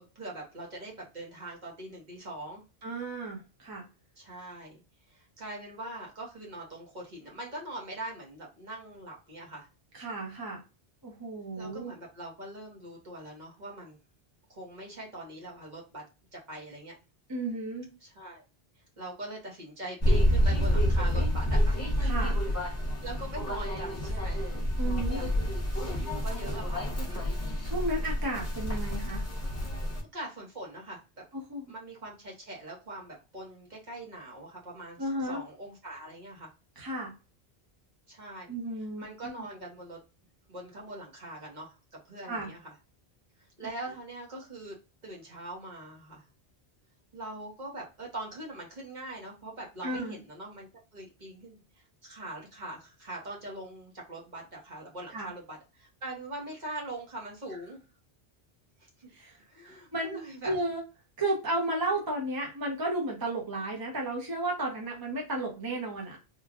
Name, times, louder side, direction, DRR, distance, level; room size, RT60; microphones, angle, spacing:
voice 1, 0.0-2.6 4.2-4.8 5.1-9.7 11.6-14.0 14.5-16.0 16.3-17.0 18.0-18.4 19.0-22.0 22.6-22.7 23.0-25.4 25.8-27.3 30.1-31.0 31.7-36.5 38.1-38.5 39.0-40.0 40.5-42.7 43.4-44.8 45.0-46.3 47.1-51.6 52.0-57.8 58.8-59.1 59.5-60.6, right 1 dB, 50° right, -2 dB, 1.1 m, -42 dB
voice 2, 2.8-3.8 9.9-10.6 11.0-11.9 17.3-17.9 22.0-22.4 24.8-25.2 27.6-29.2 31.3-31.7 35.0-35.4 36.8-37.1 38.5-39.5 42.2-42.5 49.8-50.2 55.1-55.3 59.1-60.8 61.2-66.2, right 1 dB, 25° right, -1 dB, 0.7 m, -33 dB
sound 1, 20.0-30.0, equal, 20° left, 0.6 m, -28 dB
3.1 x 2.3 x 2.3 m, 0.30 s
omnidirectional pair, 1.0 m